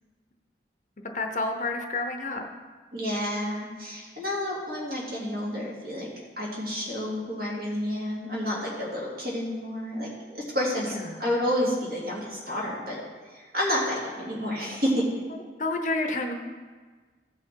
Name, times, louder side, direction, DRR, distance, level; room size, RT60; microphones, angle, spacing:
voice 1, 1.1-2.5 10.9-11.2 15.6-16.3, left 2 dB, 40° left, 4 dB, 0.7 m, -29 dB
voice 2, 2.9-6.1 6.4-13.0 13.3-15.0, equal, 55° right, -5 dB, 2.9 m, -30 dB
15.0 x 5.8 x 4.6 m, 1.4 s
head